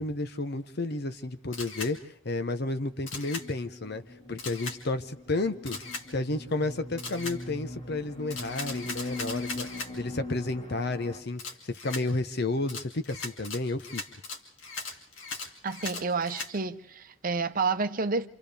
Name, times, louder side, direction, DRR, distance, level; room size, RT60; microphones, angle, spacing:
voice 1, 0.0-4.0 4.3-5.8 6.1-9.7 9.9-14.0, left 2 dB, 60° left, 1.0 m, -31 dB
Camera, 1.5-1.9 3.1-3.5 4.4-4.8 5.7-6.1 7.0-7.4 8.3-9.9 11.4-12.0 12.7-16.5, left 3 dB, 80° left, 2.7 m, -38 dB
sound 1, 2.9-11.2, left 2 dB, 35° left, 2.2 m, -42 dB
voice 2, 15.6-18.3, right 4 dB, 45° right, 0.8 m, -29 dB
28.5 x 27.5 x 3.5 m
head